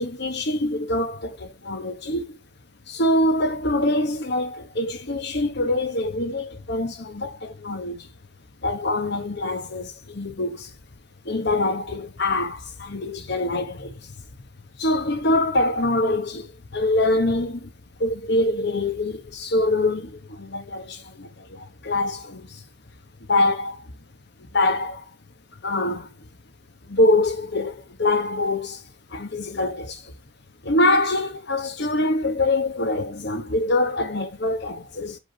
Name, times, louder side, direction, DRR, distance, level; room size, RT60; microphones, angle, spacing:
voice 1, 0.0-2.4 2.9-8.1 8.6-10.7 11.2-13.9 14.8-16.5 16.7-17.7 18.0-22.5 23.3-23.8 24.5-25.0 25.6-26.1 26.9-28.8 29.1-30.0 30.6-35.2, left 2 dB, 60° left, 1.2 m, -24 dB
8.2 x 3.6 x 5.1 m
head